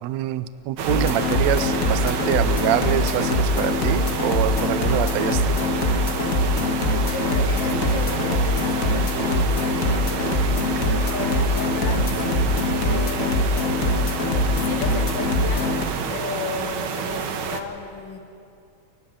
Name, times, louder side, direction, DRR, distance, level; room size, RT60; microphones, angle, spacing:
voice 1, 0.0-5.5, right 12 dB, 80° right, 14 dB, 1.6 m, -25 dB
sound 1, 0.8-17.6, right 6 dB, 65° right, 1.3 m, -29 dB
sound 2, 0.9-15.9, left 2 dB, 60° left, 0.8 m, -23 dB
voice 2, 7.0-10.1 11.0-12.2 12.7-13.6 14.6-18.2, left 5 dB, 40° left, 3 dB, 2.0 m, -35 dB
30.0 x 11.5 x 9.2 m, 2.6 s
omnidirectional pair, 3.8 m